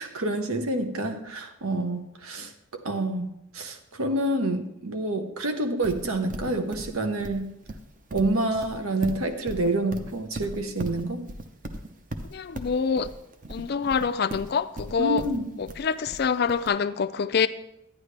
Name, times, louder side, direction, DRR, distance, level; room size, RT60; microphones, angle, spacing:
voice 1, 0.0-7.4 8.1-11.2 15.0-15.5, right 1 dB, 85° right, 6 dB, 1.0 m, -28 dB
Livestock farm animals working animals, 5.8-16.7, right 1 dB, 40° right, 0.7 m, -38 dB
voice 2, 12.3-13.1 13.5-15.2 15.6-17.5, left 6 dB, 50° left, 12 dB, 0.4 m, -26 dB
11.5 x 9.6 x 3.3 m, 0.83 s
head